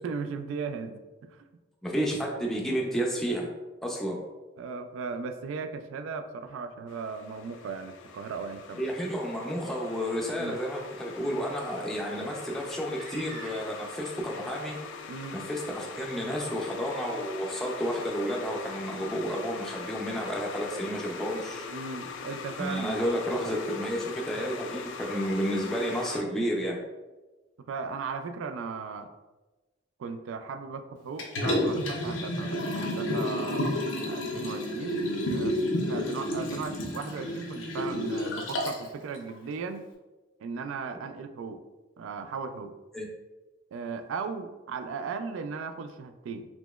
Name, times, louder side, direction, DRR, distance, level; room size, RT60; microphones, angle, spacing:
voice 1, 0.0-1.5 4.6-8.8 10.3-10.6 15.1-15.4 21.7-23.6 27.7-29.1 30.0-33.7 34.1-35.6 35.9-39.8 40.4-41.6 42.0-42.7 43.7-46.5, right 5 dB, 85° right, 8 dB, 0.3 m, -37 dB
voice 2, 1.8-3.5 3.8-4.2 8.8-14.8 15.3-21.7 22.6-26.8 36.2-36.3 42.9-43.1, equal, ahead, -2 dB, 0.4 m, -31 dB
sound 1, 6.9-26.2, left 6 dB, 70° left, 0.3 m, -42 dB
sound 2, 12.8-14.1 15.1-15.2 15.9-16.0, right 1 dB, 30° right, 1.0 m, -47 dB
Liquid, 31.2-38.9 39.3-39.4, left 1 dB, 90° left, 0.7 m, -30 dB
4.0 x 2.9 x 2.3 m, 1.1 s
head